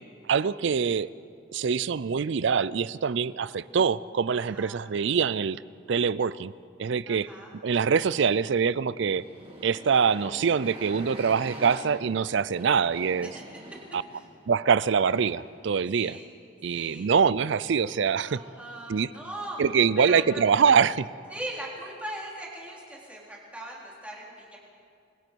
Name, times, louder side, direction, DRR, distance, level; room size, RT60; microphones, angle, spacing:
voice 1, 0.3-1.1 1.5-5.6 5.9-6.5 6.8-7.3 7.6-9.2 9.6-13.3 13.9-14.0 14.5-16.2 16.6-18.4 18.9-19.1 19.6-21.1, right 6 dB, 60° right, 19 dB, 0.4 m, -24 dB
voice 2, 4.4-4.8 7.1-7.5 13.2-13.8 14.1-14.3 15.9-16.3 16.7-17.1 18.3-19.6 20.0-20.4 21.3-24.6, right 1 dB, 5° right, -4 dB, 3.6 m, -40 dB
Motorcycle, 8.9-15.6, right 1 dB, 30° right, 6.4 m, -44 dB
28.0 x 21.5 x 4.6 m, 2.4 s
head